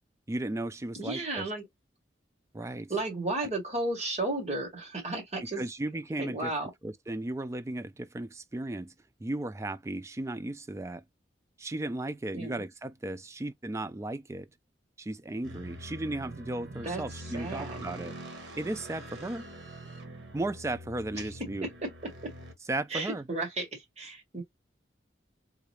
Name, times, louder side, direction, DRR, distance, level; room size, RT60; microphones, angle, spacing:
voice 1, 0.3-1.5 2.5-2.9 3.4-3.5 5.4-6.5 6.8-8.9 9.2-11.0 11.6-14.5 15.0-19.4 20.3-21.7 22.7-23.2, right 2 dB, 15° right, 0.3 m, -35 dB
voice 2, 1.0-1.6 2.9-5.6 6.2-6.7 12.3-12.6 16.8-17.0 17.3-17.8 22.9-24.4, right 2 dB, 35° right, 2.0 m, -33 dB
sound 1, 15.4-22.5, right 1 dB, 85° right, 1.2 m, -44 dB
3.7 x 2.4 x 3.1 m
head